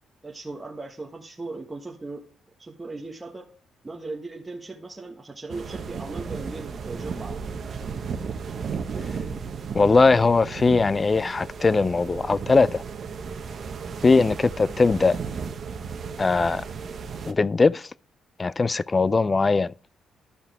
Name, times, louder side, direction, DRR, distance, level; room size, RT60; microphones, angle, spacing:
voice 1, 0.2-2.2 2.6-3.5 3.8-7.5 14.6-14.8, right 3 dB, 20° right, 1.4 m, -38 dB
sound 1, 5.5-17.3, right 5 dB, 55° right, 1.1 m, -34 dB
voice 2, 9.7-12.8 14.0-15.2 16.2-16.6 17.3-17.9 18.4-19.7, left 4 dB, 30° left, 0.3 m, -20 dB
12.5 x 5.7 x 3.4 m
cardioid pair, 90°, 0 cm